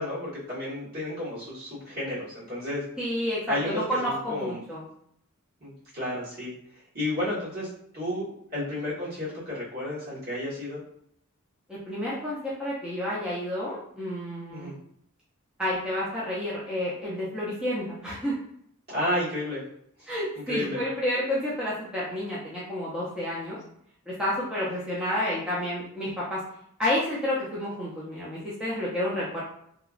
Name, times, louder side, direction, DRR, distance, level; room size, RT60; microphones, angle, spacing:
voice 1, 0.0-2.8 3.5-4.6 5.6-6.5 6.9-7.7 7.9-10.8 14.5-14.8 18.9-19.6 20.5-20.8, left 1 dB, 45° right, -8 dB, 1.5 m, -32 dB
voice 2, 3.0-4.9 11.7-14.7 15.6-18.4 20.1-23.6 24.1-26.4 26.8-29.4, left 1 dB, 5° right, -9 dB, 0.6 m, -30 dB
2.9 x 2.3 x 2.4 m, 0.70 s
head